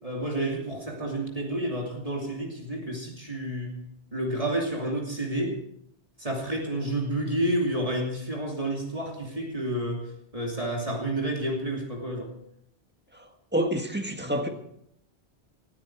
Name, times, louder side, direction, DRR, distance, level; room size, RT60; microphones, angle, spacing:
voice 1, 0.0-3.8 4.1-5.6 6.2-12.3, right 1 dB, 30° right, 3.0 m, -30 dB
voice 2, 13.1-14.5, right 1 dB, 10° right, 1.8 m, -28 dB
19.5 x 13.5 x 4.7 m
omnidirectional pair, 1.1 m